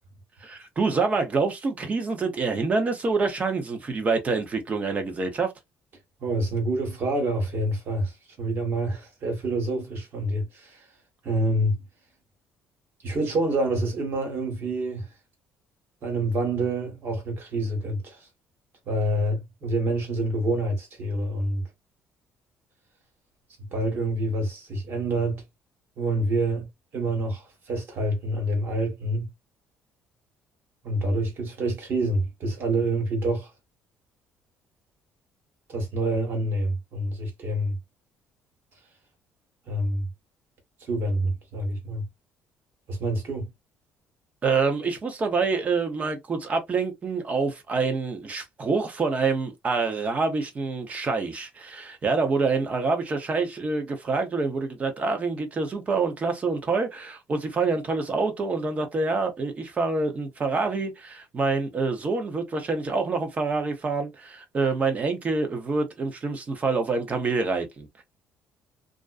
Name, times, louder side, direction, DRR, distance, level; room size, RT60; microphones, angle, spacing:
voice 1, 0.4-5.5 44.4-68.0, right 4 dB, 35° right, 0.7 m, -26 dB
voice 2, 6.2-10.9 11.2-11.8 13.0-15.1 16.0-18.3 18.8-21.7 23.7-25.4 26.0-26.7 26.9-29.2 30.8-33.5 35.7-37.8 39.7-40.1 40.8-42.0 42.9-43.5, right 1 dB, 55° right, 1.4 m, -27 dB
2.5 x 2.2 x 2.4 m
cardioid pair, 110°, 4 cm